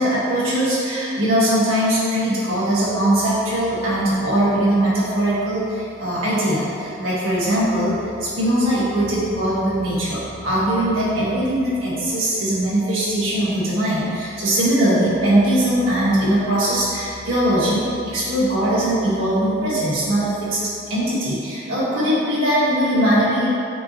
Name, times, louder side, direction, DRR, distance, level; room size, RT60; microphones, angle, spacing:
voice 1, 0.0-10.2 10.4-20.6 20.9-23.5, right 1 dB, 80° right, -10 dB, 1.3 m, -20 dB
sound 1, 2.7-21.1, left 2 dB, 80° left, 0.6 m, -45 dB
5.2 x 3.0 x 2.8 m, 2.6 s
head